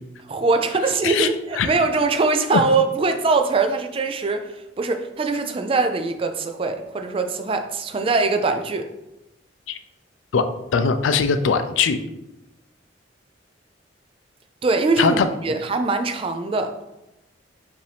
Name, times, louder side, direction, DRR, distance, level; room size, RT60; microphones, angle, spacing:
voice 1, 0.3-8.9 14.6-16.7, right 3 dB, 30° right, 7 dB, 0.3 m, -22 dB
voice 2, 10.3-12.0 15.0-15.3, left 5 dB, 90° left, 10 dB, 0.4 m, -20 dB
5.3 x 2.6 x 3.3 m, 0.92 s
head